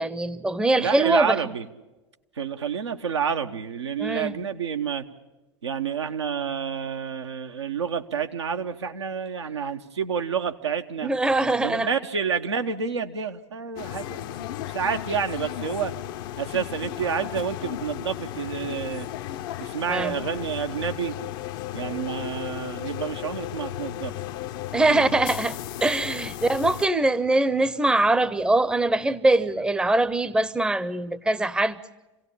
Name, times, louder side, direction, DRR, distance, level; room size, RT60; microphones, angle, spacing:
voice 1, 0.0-1.4 4.0-4.3 11.0-11.9 19.9-20.1 24.7-31.8, right 2 dB, 5° right, 0.7 m, -22 dB
voice 2, 0.8-1.7 2.3-5.1 5.6-11.1 11.6-15.9 16.4-19.1 19.6-21.1 21.7-24.2 24.9-25.2, right 6 dB, 75° right, 1.1 m, -29 dB
sound 1, 13.8-26.9, left 13 dB, 50° left, 0.7 m, -35 dB
27.0 x 17.0 x 8.5 m
figure-of-eight pair, 85°, 15 cm